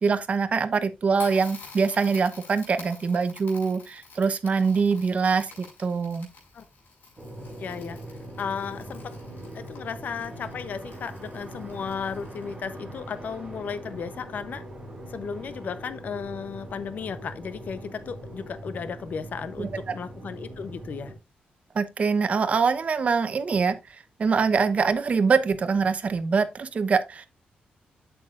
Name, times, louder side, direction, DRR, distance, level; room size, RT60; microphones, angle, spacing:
voice 1, 0.0-6.3 19.6-19.8 21.7-23.8 24.2-27.3, right 5 dB, 40° right, 0.9 m, -24 dB
Crackle, 1.1-12.7, left 4 dB, 75° left, 5.4 m, -49 dB
sound 1, 7.2-21.1, right 1 dB, 20° right, 3.2 m, -41 dB
voice 2, 7.6-8.0 8.4-9.2 9.5-14.6 15.1-21.1, left 6 dB, 55° left, 0.8 m, -35 dB
8.5 x 7.9 x 2.5 m
wide cardioid pair, 135°, 3 cm